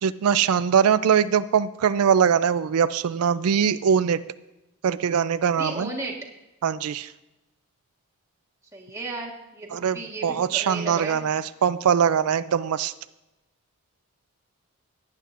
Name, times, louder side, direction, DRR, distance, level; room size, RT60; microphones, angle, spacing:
voice 1, 0.0-4.2 4.8-5.9 6.6-7.1 9.7-12.9, right 7 dB, 85° right, 14 dB, 0.4 m, -22 dB
voice 2, 5.5-6.1 8.7-11.2, right 2 dB, 15° right, -1 dB, 1.4 m, -35 dB
18.0 x 9.6 x 2.5 m, 0.98 s
head